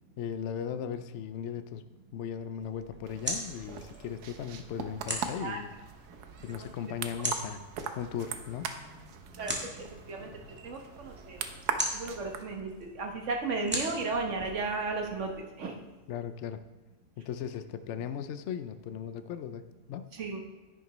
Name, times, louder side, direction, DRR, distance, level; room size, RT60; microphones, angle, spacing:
voice 1, 0.2-1.8 2.1-5.7 6.4-7.6 8.0-8.7 16.1-16.6 17.2-20.1, left 8 dB, 75° left, 11 dB, 0.6 m, -37 dB
sound 1, 2.6-15.4, equal, 5° right, 1.5 m, -41 dB
sound 2, 3.0-12.5, right 7 dB, 75° right, 1.2 m, -41 dB
voice 2, 9.4-10.3 10.6-11.4 11.9-15.8 20.1-20.4, right 3 dB, 50° right, 3 dB, 1.4 m, -34 dB
10.0 x 9.7 x 3.1 m, 1.3 s
omnidirectional pair, 1.7 m